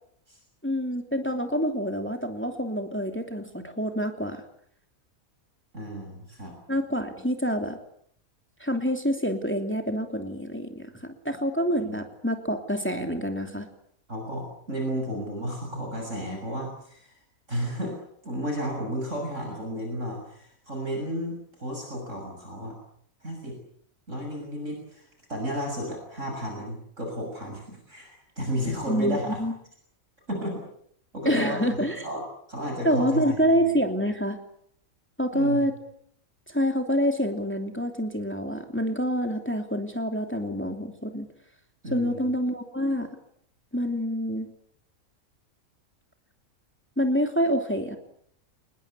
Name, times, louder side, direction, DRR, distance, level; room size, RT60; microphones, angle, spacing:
voice 1, 0.6-4.4 6.7-7.8 8.6-10.9 11.2-13.7 28.9-29.5 31.2-32.1 32.8-34.4 35.2-35.8 36.5-41.3 41.9-43.1 43.7-44.5 47.0-48.0, equal, 10° left, 5 dB, 2.9 m, -27 dB
voice 2, 5.7-6.5 11.8-12.0 14.1-17.2 17.5-22.8 23.2-23.6 24.1-29.4 30.3-30.7 31.1-31.8 32.0-32.2 32.5-33.2 33.5-33.6 35.3-35.6 41.8-42.3, equal, 60° right, 1 dB, 7.2 m, -33 dB
27.0 x 20.5 x 8.5 m, 0.67 s
omnidirectional pair, 1.5 m